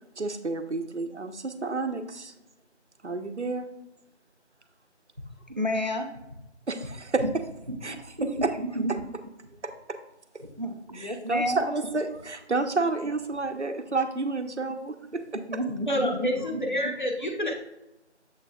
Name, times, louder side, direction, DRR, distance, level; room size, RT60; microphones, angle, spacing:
voice 1, 0.2-2.3 3.0-3.7 6.7-7.2 7.8-8.1 8.4-8.6 9.6-10.0 10.9-15.6, right 3 dB, 75° right, 8 dB, 0.9 m, -30 dB
voice 2, 5.5-6.1 7.2-7.3 7.7-9.0 10.4-11.7 15.5-16.6, equal, 40° right, 4 dB, 0.7 m, -31 dB
voice 3, 15.9-17.5, left 1 dB, 45° left, 0 dB, 1.1 m, -28 dB
7.4 x 6.2 x 2.4 m, 0.91 s
figure-of-eight pair, 180°, 34 cm